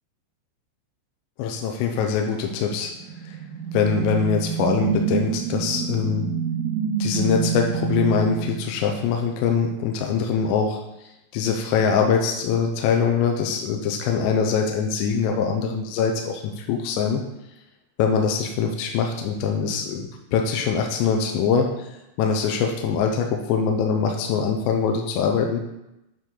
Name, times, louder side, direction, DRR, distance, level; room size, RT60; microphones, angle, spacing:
voice 1, 1.4-2.9 3.3-3.4 3.7-6.3 7.0-10.8 11.3-17.2 18.0-21.9 22.2-25.6, left 6 dB, 85° left, 2 dB, 2.8 m, -23 dB
sound 1, 2.8-9.4, right 7 dB, 90° right, 3.4 m, -27 dB
9.1 x 4.5 x 3.7 m, 0.90 s
omnidirectional pair, 5.3 m